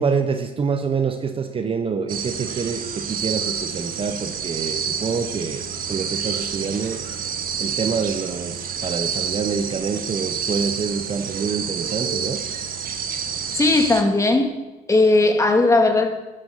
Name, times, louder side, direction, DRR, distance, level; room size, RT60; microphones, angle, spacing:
voice 1, 0.0-5.6 5.9-7.0 7.6-12.4, right 5 dB, 35° right, 8 dB, 1.0 m, -26 dB
sound 1, 2.1-14.0, right 7 dB, 55° right, 1.6 m, -29 dB
voice 2, 13.6-14.6 14.9-16.1, left 2 dB, 20° left, 5 dB, 1.9 m, -17 dB
12.0 x 11.5 x 5.8 m, 1.2 s
cardioid pair, 110°, 17 cm